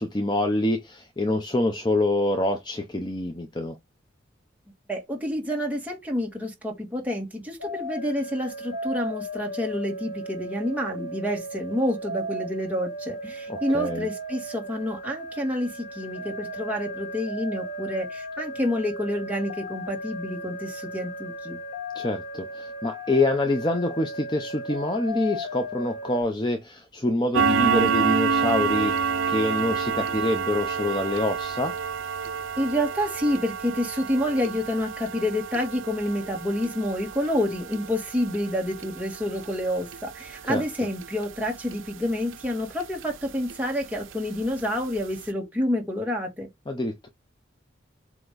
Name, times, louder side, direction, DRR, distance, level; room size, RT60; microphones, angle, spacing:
voice 1, 0.0-3.8 13.5-14.1 21.9-31.7 40.4-40.6 46.7-47.1, left 1 dB, 20° left, 0.7 m, -26 dB
voice 2, 4.9-21.6 32.6-46.5, left 1 dB, 10° right, 1.8 m, -28 dB
sound 1, 7.6-26.2, equal, 70° left, 1.2 m, -36 dB
sound 2, 27.3-42.5 42.8-43.0 43.5-43.6 44.0-44.1 44.6-44.7 45.0-45.1, right 5 dB, 80° right, 0.6 m, -29 dB
7.8 x 3.0 x 4.0 m
head